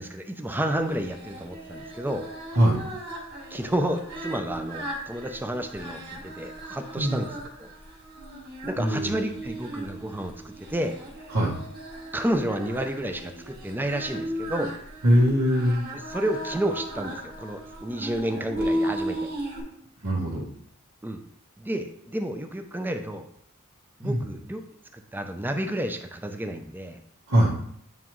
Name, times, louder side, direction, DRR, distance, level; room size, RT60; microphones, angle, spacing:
voice 1, 0.0-2.3 3.5-7.3 7.6-7.7 8.6-10.9 12.1-14.7 15.9-19.3 21.0-21.2 21.6-23.3 24.0-24.6 24.9-27.0, right 1 dB, 10° right, 6 dB, 0.5 m, -30 dB
Singing, 0.9-19.6, right 1 dB, 45° right, 1.9 m, -36 dB
voice 2, 8.8-9.1 11.3-11.5 15.0-15.8 20.0-20.5 24.0-24.2 27.3-27.5, equal, 80° right, -8 dB, 1.7 m, -21 dB
9.0 x 3.6 x 3.1 m, 0.68 s
head